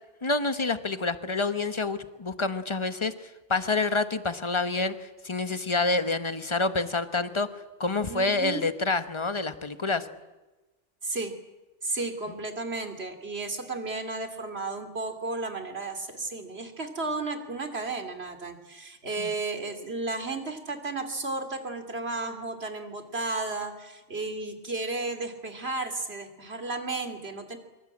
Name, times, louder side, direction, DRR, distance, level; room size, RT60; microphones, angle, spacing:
voice 1, 0.2-7.5 7.8-10.1 19.2-19.3, left 3 dB, 25° left, 10 dB, 1.3 m, -28 dB
voice 2, 8.1-8.6 11.0-11.3 11.8-27.6, right 3 dB, 60° right, 7 dB, 3.1 m, -33 dB
25.5 x 23.0 x 8.7 m, 1.1 s
omnidirectional pair, 1.2 m